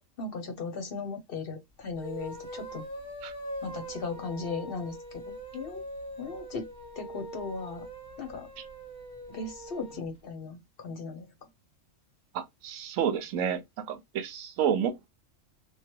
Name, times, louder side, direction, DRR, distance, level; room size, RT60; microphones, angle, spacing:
voice 1, 0.2-2.8 3.6-5.8 6.2-6.7 7.0-7.9 8.2-8.5 9.3-11.3, left 4 dB, 55° left, 0.8 m, -37 dB
sound 1, 1.9-10.0, right 1 dB, 5° left, 1.0 m, -42 dB
voice 2, 12.3-15.1, right 8 dB, 85° right, 1.0 m, -30 dB
3.1 x 2.2 x 2.8 m
omnidirectional pair, 1.4 m